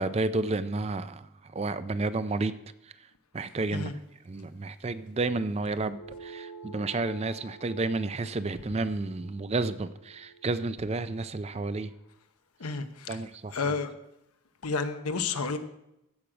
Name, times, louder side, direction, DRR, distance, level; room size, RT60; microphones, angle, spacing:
voice 1, 0.0-2.5 2.8-2.9 3.3-3.9 4.3-11.9 13.1-13.7, right 3 dB, 30° right, 0.4 m, -31 dB
sound 1, 5.8-10.6, right 3 dB, 55° left, 1.1 m, -49 dB
voice 2, 12.6-13.2 13.5-13.9 14.6-15.6, left 4 dB, 90° left, 0.9 m, -31 dB
15.5 x 6.2 x 5.0 m
head